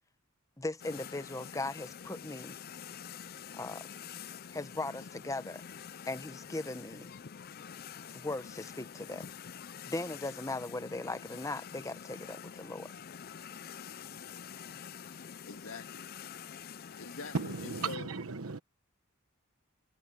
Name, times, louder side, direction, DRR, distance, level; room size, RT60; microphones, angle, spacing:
voice 1, 0.6-2.6 3.5-3.9 4.5-5.6 6.1-7.1 8.1-9.3 9.8-12.9, left 2 dB, 15° left, 0.9 m, -38 dB
sound 1, 0.8-18.0, left 7 dB, 45° left, 0.5 m, -47 dB
voice 2, 14.1-14.5 15.4-16.1 17.0-18.1, left 3 dB, 75° left, 1.8 m, -45 dB
voice 3, 17.3-18.6, right 4 dB, 80° right, 1.1 m, -35 dB
head